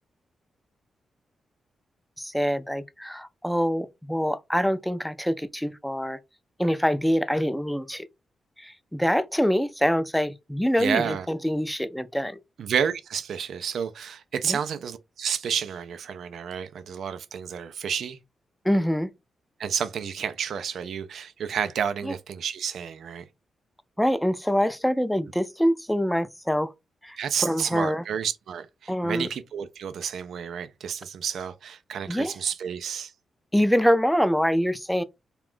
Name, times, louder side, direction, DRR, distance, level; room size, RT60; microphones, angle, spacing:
voice 1, 2.2-6.2 6.6-8.1 8.6-12.4 14.4-14.6 18.6-19.1 22.0-22.1 24.0-26.7 27.0-28.0 28.9-29.3 32.1-32.4 33.5-35.0, equal, 5° left, 0.4 m, -25 dB
voice 2, 10.8-11.3 12.6-18.2 19.6-23.2 27.2-33.1, right 7 dB, 70° right, 0.3 m, -30 dB
2.4 x 2.2 x 3.5 m
hypercardioid pair, 40°, 0 cm